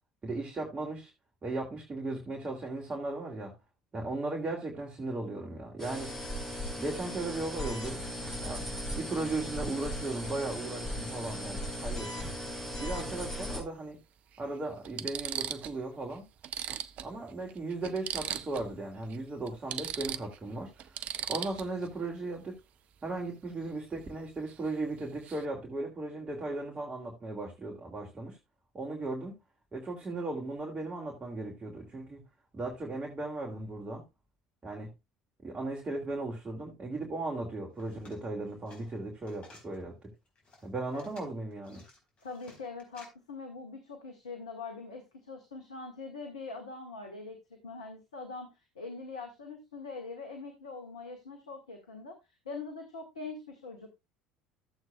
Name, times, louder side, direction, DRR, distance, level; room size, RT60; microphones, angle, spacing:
voice 1, 0.2-1.1 1.4-3.5 3.9-6.2 6.7-8.0 8.4-8.6 8.9-12.3 12.8-14.0 14.4-16.2 17.0-22.6 23.0-28.4 28.7-29.4 29.7-32.2 32.5-34.0 34.6-34.9 35.4-40.1 40.6-41.8, right 2 dB, 25° right, 2.8 m, -37 dB
sound 1, 5.8-13.6, equal, 15° left, 5.5 m, -37 dB
sound 2, 11.9-12.1 13.6-13.7 14.3-14.4 14.8-15.8 16.1-16.2 16.4-18.7 19.0-19.2 19.5-21.9 24.5-24.7 25.0-25.4, right 10 dB, 45° right, 0.6 m, -38 dB
sound 3, 37.7-39.8 40.3-43.1, left 2 dB, 40° left, 4.3 m, -56 dB
voice 2, 40.9-41.4 42.2-52.2 52.4-53.9, left 4 dB, 75° left, 1.6 m, -43 dB
14.0 x 7.9 x 2.3 m
figure-of-eight pair, 65°, 3 cm